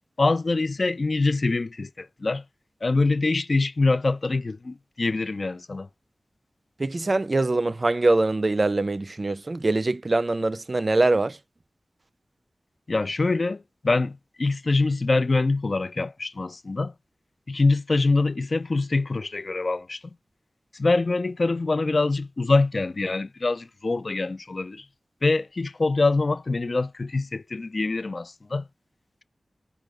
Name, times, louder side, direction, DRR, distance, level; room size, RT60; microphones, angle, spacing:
voice 1, 0.2-2.4 2.8-5.9 12.9-16.9 17.5-20.0 20.7-24.9 25.2-28.6, left 3 dB, 60° left, 0.3 m, -24 dB
voice 2, 6.8-11.4, right 2 dB, 50° right, 0.4 m, -23 dB
5.0 x 2.2 x 4.6 m
wide cardioid pair, 55°, 0 cm